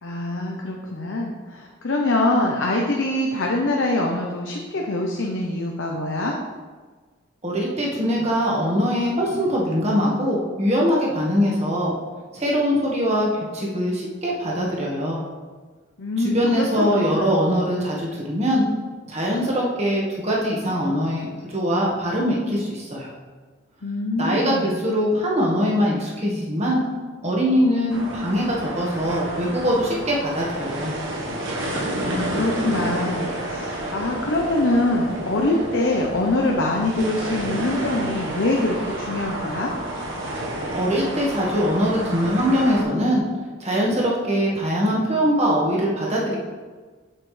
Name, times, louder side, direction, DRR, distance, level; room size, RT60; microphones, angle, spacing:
voice 1, 0.0-6.3 16.0-17.4 23.8-24.8 32.0-39.7, left 2 dB, 65° left, 0 dB, 0.7 m, -24 dB
voice 2, 7.4-11.9 12.3-13.3 13.5-15.2 16.2-18.6 19.1-23.1 24.2-26.8 27.2-30.9 40.7-43.2 43.6-46.4, equal, 30° right, -3 dB, 1.5 m, -22 dB
sound 1, 27.9-42.8, right 1 dB, 70° right, 1.3 m, -30 dB
7.5 x 7.3 x 3.2 m, 1.4 s
head